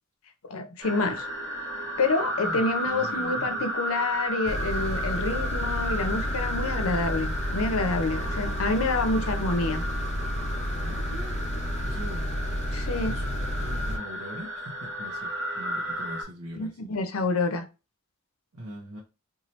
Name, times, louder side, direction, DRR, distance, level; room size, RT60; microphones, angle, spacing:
voice 1, 0.5-1.3 2.0-9.8 12.7-13.2 16.6-17.6, left 3 dB, 75° left, 0.6 m, -28 dB
sound 1, 0.8-16.2, equal, 60° right, 1.3 m, -33 dB
voice 2, 2.4-3.7 10.8-11.4 11.8-12.6 13.0-16.8 18.5-19.0, equal, 90° right, 0.7 m, -42 dB
sound 2, 4.4-14.0, equal, 30° left, 0.6 m, -31 dB
2.8 x 2.4 x 3.0 m
head